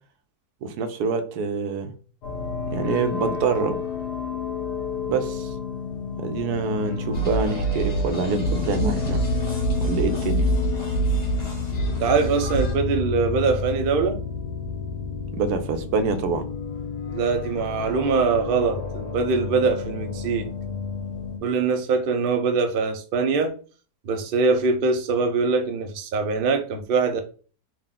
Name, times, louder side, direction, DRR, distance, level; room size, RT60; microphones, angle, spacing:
voice 1, 0.6-1.9 2.7-3.8 5.1-5.5 6.2-9.2 9.8-10.5 15.3-16.5, right 4 dB, 90° right, 7 dB, 1.2 m, -26 dB
sound 1, 2.2-21.4, left 5 dB, 85° left, 1.4 m, -30 dB
sound 2, 7.1-12.7, right 2 dB, 40° left, 1.3 m, -26 dB
voice 2, 12.0-14.2 17.1-20.5 21.4-23.5 24.0-27.2, right 4 dB, 65° right, 6 dB, 0.5 m, -23 dB
3.7 x 2.4 x 3.6 m, 0.39 s
omnidirectional pair, 1.6 m